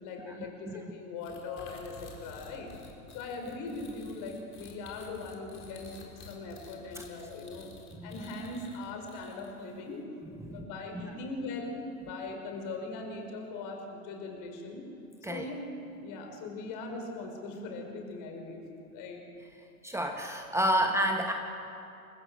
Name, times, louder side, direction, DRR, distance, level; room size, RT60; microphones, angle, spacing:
voice 1, 0.0-2.7 3.1-7.7 8.0-10.0 10.4-14.9 15.3-15.6 16.0-18.6 18.9-19.2, left 3 dB, 45° left, 3 dB, 5.4 m, -40 dB
sound 1, 1.2-9.7, left 4 dB, 25° left, 4.4 m, -51 dB
voice 2, 19.8-21.3, right 1 dB, 5° right, 3 dB, 1.5 m, -30 dB
27.0 x 15.5 x 8.1 m, 2.6 s
figure-of-eight pair, 85°, 45 cm